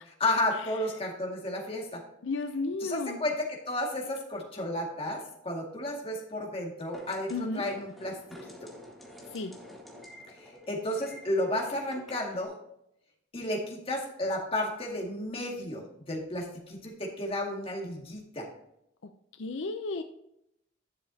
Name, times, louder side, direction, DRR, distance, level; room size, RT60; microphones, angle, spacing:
voice 1, 0.2-2.0 2.8-8.1 10.7-12.5 13.3-18.5, left 1 dB, 30° left, -1 dB, 2.1 m, -32 dB
voice 2, 2.2-3.2 7.3-7.6 9.3-9.6 19.4-20.0, left 3 dB, 80° left, 7 dB, 0.6 m, -33 dB
sound 1, 6.9-12.5, left 1 dB, ahead, 1.8 m, -49 dB
11.0 x 7.1 x 2.8 m, 0.78 s
head